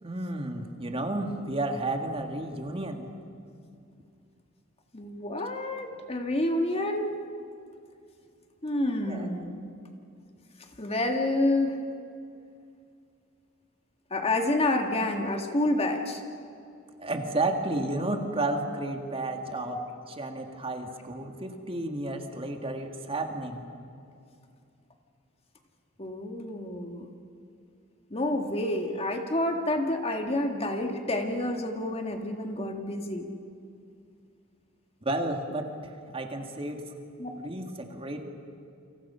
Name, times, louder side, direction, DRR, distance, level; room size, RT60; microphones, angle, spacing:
voice 1, 0.0-3.1 9.1-9.3 17.0-19.8 20.1-23.7 35.0-36.9 37.4-38.2, right 2 dB, 25° right, 4 dB, 2.0 m, -32 dB
voice 2, 4.9-7.1 8.6-9.6 10.8-11.8 14.1-16.2 19.7-19.9 26.0-27.1 28.1-33.3 37.2-37.4, left 1 dB, 30° left, 4 dB, 1.8 m, -28 dB
28.5 x 26.5 x 5.7 m, 2.4 s
head